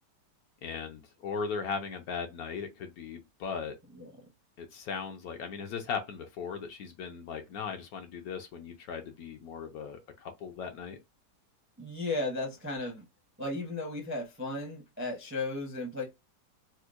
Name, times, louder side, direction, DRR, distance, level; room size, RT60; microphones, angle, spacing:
voice 1, 0.6-3.7 4.6-11.0, left 6 dB, 70° left, 1.0 m, -38 dB
voice 2, 3.9-4.3 11.8-13.0 13.4-16.0, left 2 dB, 15° right, 0.5 m, -35 dB
4.4 x 2.1 x 2.4 m
omnidirectional pair, 1.8 m